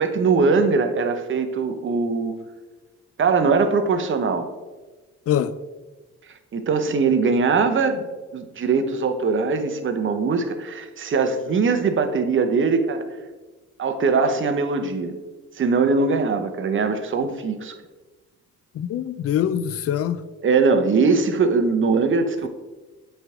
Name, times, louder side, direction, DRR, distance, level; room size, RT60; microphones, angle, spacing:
voice 1, 0.0-2.3 3.2-4.5 6.3-8.1 8.3-13.0 13.8-15.1 15.6-17.7 20.4-22.5, right 4 dB, 40° right, 0.8 m, -21 dB
voice 2, 18.7-20.2, left 10 dB, 50° left, 0.4 m, -23 dB
8.0 x 3.4 x 3.6 m
cardioid pair, 90°, 30 cm